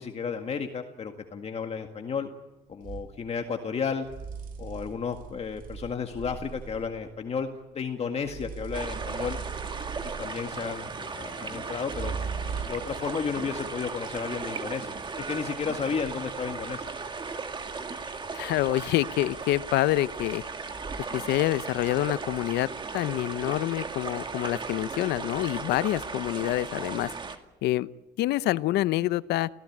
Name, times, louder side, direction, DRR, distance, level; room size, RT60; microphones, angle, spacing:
voice 1, 0.0-2.3 2.7-4.1 4.6-7.5 7.7-9.4 10.2-12.1 12.7-14.9 15.3-16.9, left 6 dB, 40° left, 4 dB, 1.9 m, -32 dB
sound 1, 2.8-3.1 4.0-7.0 8.2-10.5 11.9-13.0, right 6 dB, 55° right, 3.1 m, -38 dB
sound 2, 8.7-27.4, right 4 dB, 30° right, 2.1 m, -36 dB
voice 2, 18.3-20.4 21.1-22.7 22.9-27.1 27.6-27.9 28.2-29.5, left 15 dB, 80° left, 17 dB, 0.7 m, -27 dB
27.5 x 17.0 x 8.8 m, 1.1 s
cardioid pair, 110°, 17 cm